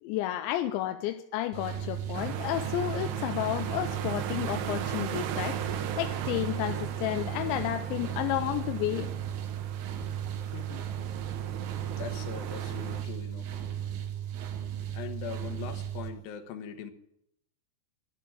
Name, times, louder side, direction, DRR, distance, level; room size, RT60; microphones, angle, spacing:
voice 1, 0.0-9.1, left 14 dB, 80° left, 7 dB, 3.0 m, -32 dB
sound 1, 1.5-16.1, right 10 dB, 85° right, 4.0 m, -36 dB
sound 2, 2.1-13.0, right 9 dB, 70° right, 3.0 m, -38 dB
voice 2, 10.5-10.9 12.0-13.6 14.9-16.9, left 8 dB, 65° left, 8 dB, 2.7 m, -41 dB
14.0 x 12.0 x 8.5 m, 0.78 s
omnidirectional pair, 5.3 m